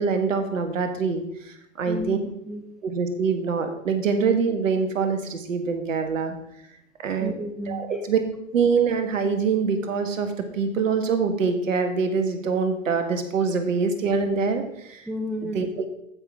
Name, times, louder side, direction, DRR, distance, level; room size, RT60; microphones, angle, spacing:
voice 1, 0.0-2.2 2.8-6.3 7.0-7.3 7.7-8.2 8.5-15.0 15.4-15.9, right 5 dB, 70° right, 7 dB, 1.7 m, -24 dB
voice 2, 1.9-2.6 7.2-8.0 15.1-15.6, left 1 dB, ahead, 4 dB, 0.9 m, -32 dB
14.5 x 5.9 x 3.6 m, 0.78 s
hypercardioid pair, 110°, 41 cm